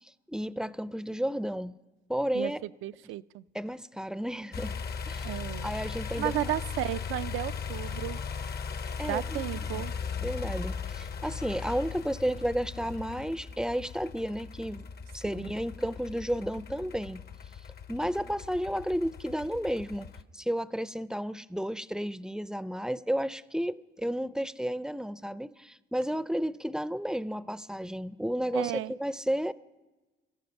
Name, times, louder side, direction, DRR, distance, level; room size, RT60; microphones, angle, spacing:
voice 1, 0.0-1.7 2.1-2.6 3.5-4.7 5.0-6.3 9.0-9.8 10.2-14.9 15.1-17.2 17.9-20.1 20.3-29.5, equal, 5° right, 16 dB, 0.4 m, -32 dB
voice 2, 2.8-3.4 5.2-5.7 6.2-8.2 9.0-9.9 15.4-15.5 28.5-28.9, right 14 dB, 85° right, 14 dB, 0.4 m, -33 dB
sound 1, 4.5-20.2, left 6 dB, 55° left, 0.8 m, -38 dB
18.0 x 14.0 x 5.2 m, 1.2 s
cardioid pair, 90°, 20 cm